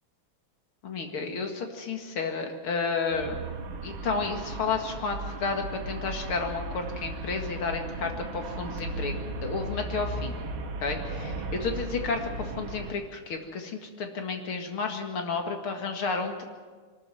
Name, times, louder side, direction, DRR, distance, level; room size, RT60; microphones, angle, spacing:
voice 1, 0.8-3.4 3.8-9.1 9.4-10.4 10.8-16.4, left 4 dB, 85° left, 4 dB, 2.9 m, -31 dB
Traffic noise roadway noise, 3.1-12.9, right 2 dB, 70° right, 2.2 m, -36 dB
23.0 x 13.5 x 9.3 m, 1.5 s
omnidirectional pair, 2.3 m